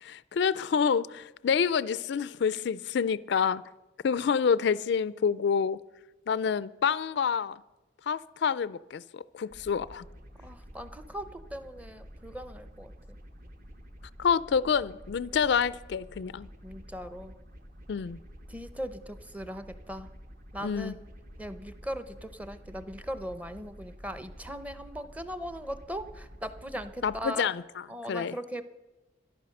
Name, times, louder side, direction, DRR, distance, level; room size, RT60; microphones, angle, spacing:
voice 1, 0.0-3.6 4.0-5.8 6.3-7.6 8.1-10.0 14.2-16.5 17.9-18.2 20.6-20.9 27.0-27.6 28.1-28.3, left 6 dB, 60° left, 0.3 m, -27 dB
sound 1, 9.5-27.2, equal, 45° right, 1.4 m, -49 dB
voice 2, 10.4-13.2 16.6-17.3 18.5-20.1 20.5-21.0 21.4-27.5 27.9-28.6, equal, 10° right, 0.7 m, -39 dB
13.5 x 11.0 x 6.5 m
head